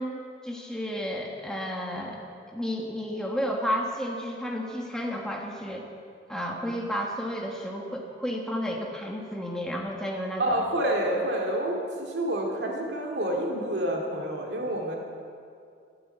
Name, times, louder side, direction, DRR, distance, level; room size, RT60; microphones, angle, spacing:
voice 1, 0.0-2.2 2.5-5.9 6.3-10.6, equal, 5° left, -1 dB, 1.4 m, -32 dB
voice 2, 10.4-15.0, right 1 dB, 70° right, -1 dB, 2.3 m, -28 dB
13.5 x 11.5 x 8.9 m, 2.4 s
head